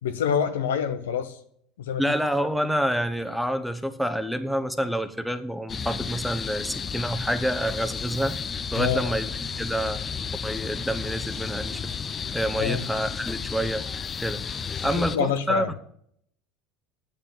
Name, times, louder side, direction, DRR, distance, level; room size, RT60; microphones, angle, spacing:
voice 1, 0.0-1.4 1.8-2.0 8.8-9.1 12.6-12.8 14.8-15.7, left 7 dB, 85° left, 9 dB, 1.0 m, -27 dB
voice 2, 2.0-8.4 8.7-10.0 10.4-11.9 12.3-13.9 14.2-14.4 14.8-15.6, equal, ahead, 9 dB, 0.9 m, -28 dB
sound 1, 5.7-15.2, left 6 dB, 30° left, 0.6 m, -33 dB
8.4 x 7.0 x 7.4 m, 0.67 s
hypercardioid pair, 90°, 0 cm